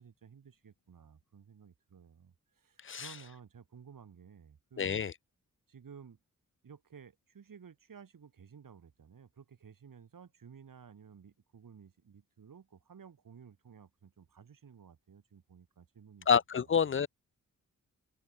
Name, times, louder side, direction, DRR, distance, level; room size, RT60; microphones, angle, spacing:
voice 1, 0.0-5.0 5.7-6.2 6.6-16.3 16.5-17.0, right 7 dB, 75° right, 7.2 m, -55 dB
voice 2, 4.8-5.1 16.3-17.1, left 7 dB, 40° left, 0.6 m, -28 dB
cardioid pair, 70°, 33 cm